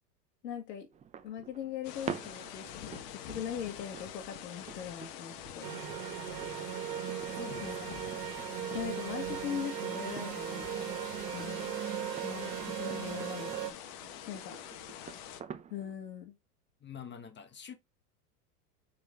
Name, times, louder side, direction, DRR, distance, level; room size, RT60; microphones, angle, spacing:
voice 1, 0.4-0.9 1.2-5.7 7.6-7.8 8.7-11.0 11.3-11.7 12.2-14.6 15.7-16.3, left 9 dB, 85° left, 1.7 m, -41 dB
sound 1, 0.9-15.9, right 7 dB, 15° right, 0.5 m, -48 dB
sound 2, 1.8-15.4, left 10 dB, 50° left, 1.4 m, -46 dB
sound 3, 5.6-13.7, right 11 dB, 80° right, 1.6 m, -38 dB
voice 2, 7.3-8.2 16.8-17.7, left 7 dB, 20° left, 1.2 m, -47 dB
8.1 x 4.3 x 3.5 m
hypercardioid pair, 110°, 48 cm